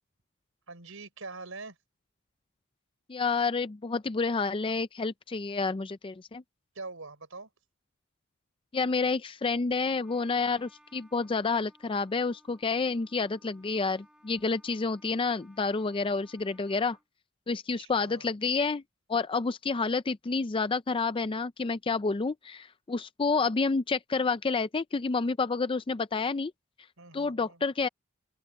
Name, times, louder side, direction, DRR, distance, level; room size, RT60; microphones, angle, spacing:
voice 1, 0.7-1.8 6.8-7.5 17.8-18.3 27.0-27.6, right 3 dB, 75° right, 5.3 m, -44 dB
voice 2, 3.1-6.4 8.7-17.0 17.5-18.8 19.1-26.5 27.1-27.9, left 4 dB, 25° left, 0.4 m, -29 dB
Trumpet, 9.9-17.1, equal, 5° right, 4.2 m, -62 dB
head